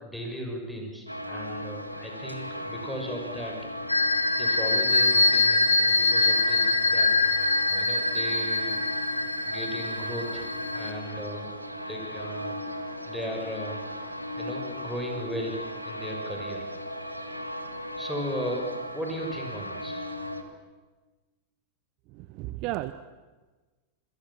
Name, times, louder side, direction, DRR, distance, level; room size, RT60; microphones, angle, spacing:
voice 1, 0.0-3.6 4.4-7.1 7.7-8.8 9.5-11.5 11.9-12.6 13.0-14.0 14.4-16.7 17.0-17.4 18.0-18.7 18.9-20.0, equal, ahead, 1 dB, 6.6 m, -36 dB
sound 1, 1.1-20.4, equal, 90° right, 2.0 m, -37 dB
sound 2, 3.9-10.9, left 3 dB, 85° left, 1.7 m, -24 dB
voice 2, 22.1-22.9, right 17 dB, 40° right, 14 dB, 0.9 m, -33 dB
27.5 x 23.0 x 7.5 m, 1.3 s
figure-of-eight pair, 90°, 0 cm